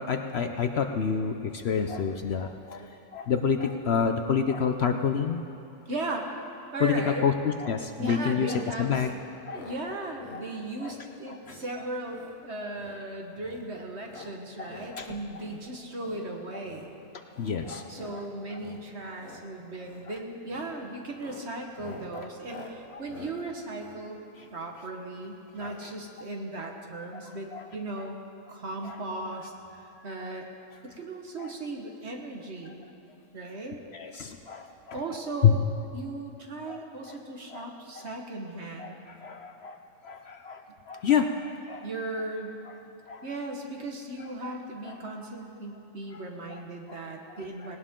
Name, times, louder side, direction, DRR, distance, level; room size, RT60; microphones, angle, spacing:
voice 1, 0.0-5.5 6.8-9.1 9.4-10.0 10.3-10.4 10.8-10.9 11.5-11.8 14.2-14.3 14.6-15.1 17.4-18.2 18.5-18.6 20.1-20.2 22.1-23.0 24.4-24.5 25.6-25.7 27.2-27.7 28.0-28.1 28.8-29.0 31.4-31.5 33.9-35.0 35.4-35.5 36.7-36.8 37.1-37.2 37.5-37.7 38.0-38.1 38.8-41.9 43.1-43.2 44.4-44.5 44.8-45.0 46.5-46.6 46.9-47.0, left 7 dB, 60° left, 6 dB, 0.8 m, -29 dB
voice 2, 5.9-6.3 6.7-7.2 8.0-9.1 9.5-16.9 17.9-24.2 24.5-28.2 28.5-30.5 30.8-32.8 33.3-33.8 34.9-35.7 35.9-39.0 41.8-42.6 43.2-47.8, right 2 dB, 50° right, 1 dB, 1.7 m, -37 dB
sound 1, 9.5-9.8 10.1-10.4 10.8-11.1 11.4-11.7 12.1-12.4 12.7-13.0 13.3-13.7 14.0-14.9 15.3-15.6 16.0-16.3 16.6-16.9 17.3-17.6 17.9-18.2 18.5-18.8 19.1-19.4 19.8-20.1 20.5-20.7 21.1-24.8 25.6-25.8 26.1-26.2 26.4-26.5, left 2 dB, 75° left, 1.8 m, -48 dB
19.0 x 18.5 x 3.7 m, 2.8 s
omnidirectional pair, 1.4 m